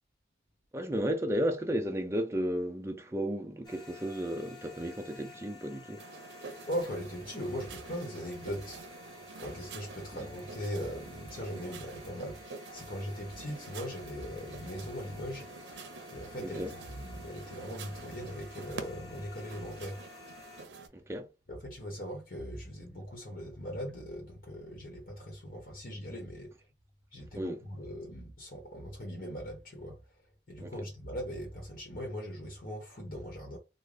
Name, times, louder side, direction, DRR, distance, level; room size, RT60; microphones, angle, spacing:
voice 1, 0.7-6.0 16.4-16.7 21.1-21.3 27.3-27.6 30.6-30.7, equal, 15° right, 0.5 m, -33 dB
sound 1, 3.6-20.6, left 3 dB, 25° left, 0.8 m, -52 dB
sound 2, 6.0-20.9, right 4 dB, 85° right, 0.6 m, -48 dB
voice 2, 6.7-9.1 9.4-15.5 16.1-20.0 21.5-26.5 27.1-30.0 30.5-33.6, equal, 50° left, 0.9 m, -40 dB
3.8 x 2.1 x 3.3 m
head